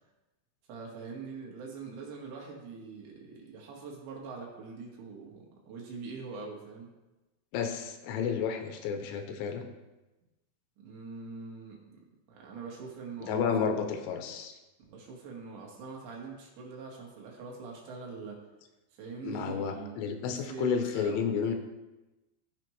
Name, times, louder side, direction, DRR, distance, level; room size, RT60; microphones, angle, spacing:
voice 1, 0.7-6.9 10.8-12.0 12.3-13.5 14.9-18.4 18.9-20.0 20.5-21.6, right 4 dB, 70° right, -1 dB, 3.3 m, -43 dB
voice 2, 7.5-9.6 13.3-14.5 19.2-21.5, left 6 dB, 80° left, 6 dB, 3.1 m, -31 dB
15.0 x 5.0 x 3.1 m, 1.0 s
omnidirectional pair, 5.5 m